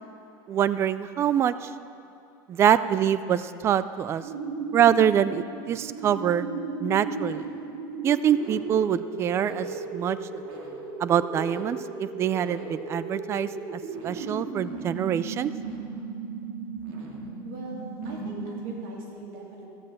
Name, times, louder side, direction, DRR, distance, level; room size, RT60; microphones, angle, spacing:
voice 1, 0.5-1.7 2.5-4.2 4.7-6.4 6.8-7.5 8.0-9.7 9.9-10.4 11.0-15.5, right 9 dB, 25° right, 15 dB, 0.3 m, -25 dB
sound 1, 4.2-19.1, right 4 dB, 55° right, 2.4 m, -36 dB
voice 2, 17.4-19.7, right 3 dB, 80° right, -2 dB, 3.5 m, -41 dB
15.0 x 7.5 x 7.6 m, 2.6 s
supercardioid pair, 145°, 12 cm